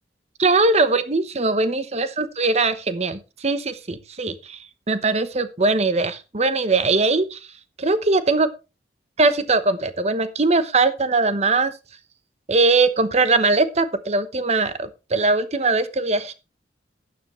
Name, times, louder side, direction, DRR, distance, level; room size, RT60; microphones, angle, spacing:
voice 1, 0.4-4.6 4.9-7.4 7.8-8.5 9.2-11.7 12.5-16.3, right 3 dB, 40° right, 12 dB, 0.9 m, -21 dB
12.0 x 9.6 x 3.1 m, 0.29 s
head